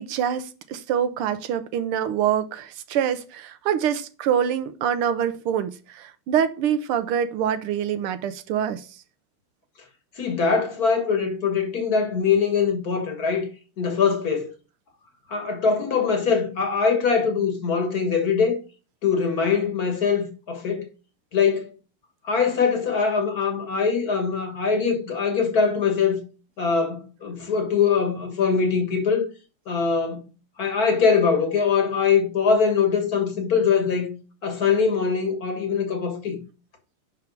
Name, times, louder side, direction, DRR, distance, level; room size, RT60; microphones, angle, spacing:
voice 1, 0.0-8.8, right 9 dB, 80° right, 1.6 m, -25 dB
voice 2, 10.2-13.4 13.8-14.5 15.3-18.6 19.0-20.8 21.3-21.7 22.2-26.2 26.6-29.2 29.7-30.3 30.6-34.1 34.4-36.4, left 5 dB, 50° left, 1.6 m, -22 dB
5.8 x 4.7 x 5.1 m
omnidirectional pair, 2.4 m